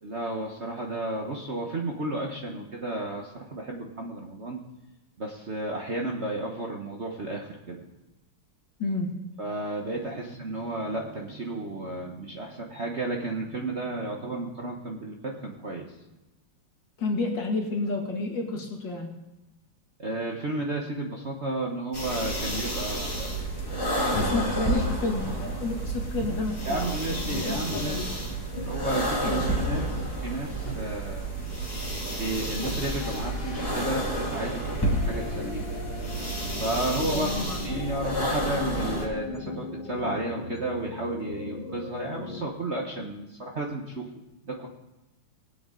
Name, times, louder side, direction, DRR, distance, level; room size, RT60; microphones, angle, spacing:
voice 1, 0.0-4.6 5.2-7.8 9.4-15.9 20.0-24.3 26.6-28.1 28.6-29.8 30.2-31.3 32.2-35.6 36.6-44.1 44.4-44.7, right 2 dB, 40° right, 0 dB, 1.1 m, -32 dB
voice 2, 8.8-9.2 17.0-19.1 24.1-28.1 29.2-29.5 37.1-37.5, left 3 dB, 60° left, 0 dB, 2.6 m, -30 dB
sound 1, 21.9-39.1, right 1 dB, 10° left, 2.2 m, -30 dB
sound 2, 26.1-26.3 27.3-27.9 28.5-28.7 29.3-29.5 29.7-30.0 30.6-30.8 32.6-42.4, left 2 dB, 30° left, 2.7 m, -37 dB
20.5 x 8.3 x 3.8 m, 1.0 s
omnidirectional pair, 2.3 m